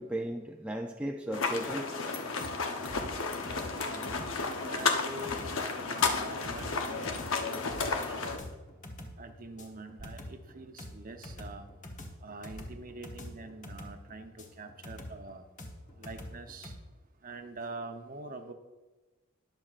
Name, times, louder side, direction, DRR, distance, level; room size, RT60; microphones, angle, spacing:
voice 1, 0.0-2.0, right 1 dB, 5° right, 1 dB, 0.4 m, -36 dB
sound 1, 1.3-8.4, left 4 dB, 70° left, 0.9 m, -32 dB
sound 2, 2.4-16.8, left 1 dB, 35° left, 1.2 m, -46 dB
voice 2, 3.8-8.4 9.2-11.7 12.2-15.4 16.0-16.7 17.2-18.5, right 2 dB, 40° right, 6 dB, 0.8 m, -45 dB
19.5 x 6.7 x 2.5 m, 1.1 s
head